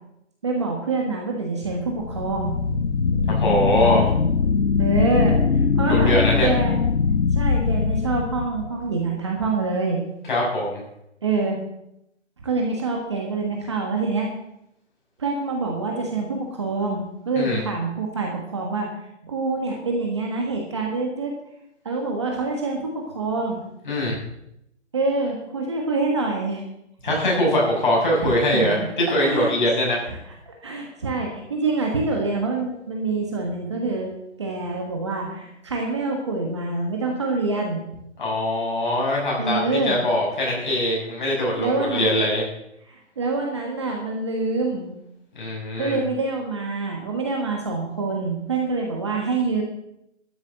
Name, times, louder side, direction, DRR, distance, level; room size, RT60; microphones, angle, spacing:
voice 1, 0.4-3.3 4.8-6.2 6.4-6.8 7.3-10.0 11.2-11.6 12.4-14.3 15.2-18.9 19.2-21.3 21.8-23.6 24.1-24.2 24.9-26.6 28.2-28.9 29.2-29.5 30.1-30.2 30.5-34.1 34.4-37.8 39.4-40.0 41.6-42.1 42.9-44.9 45.8-49.6, right 3 dB, 25° right, 0 dB, 1.4 m, -26 dB
sound 1, 1.9-8.9, left 5 dB, 75° left, 1.1 m, -21 dB
voice 2, 3.3-4.1 5.8-6.5 10.3-10.8 17.4-17.6 23.9-24.1 27.0-30.0 38.2-42.5 45.3-46.0, left 1 dB, 40° left, -3 dB, 6.2 m, -22 dB
13.0 x 7.2 x 7.5 m, 0.80 s
hypercardioid pair, 175°, 36 cm